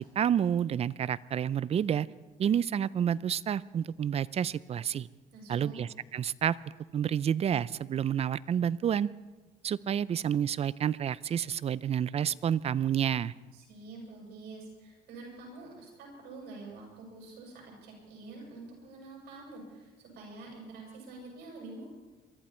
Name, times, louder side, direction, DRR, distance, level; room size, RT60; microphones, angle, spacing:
voice 1, 0.0-2.1 2.4-5.1 5.5-6.6 6.9-9.1 9.6-13.3, right 9 dB, 35° right, 20 dB, 0.5 m, -29 dB
voice 2, 5.3-5.8 13.5-21.8, right 3 dB, 80° right, -2 dB, 7.5 m, -47 dB
23.0 x 14.0 x 4.5 m, 1.2 s
cardioid pair, 110°, 17 cm